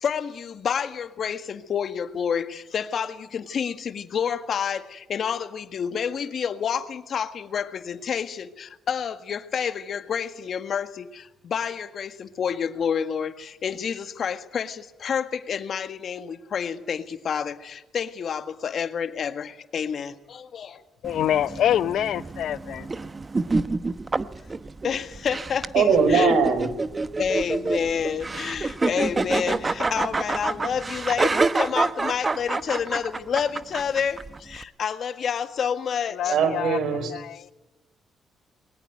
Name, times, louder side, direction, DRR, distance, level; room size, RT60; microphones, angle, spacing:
voice 1, 0.0-20.8 24.8-26.4 27.2-36.4, left 7 dB, 55° left, 1.8 m, -29 dB
voice 2, 21.0-22.9 36.1-37.5, left 10 dB, 75° left, 0.7 m, -26 dB
sound 1, 21.0-34.6, right 3 dB, 25° right, 1.0 m, -28 dB
voice 3, 25.7-26.7 36.3-37.1, right 5 dB, 75° right, 4.8 m, -20 dB
21.5 x 20.0 x 9.4 m
cardioid pair, 90°, 0 cm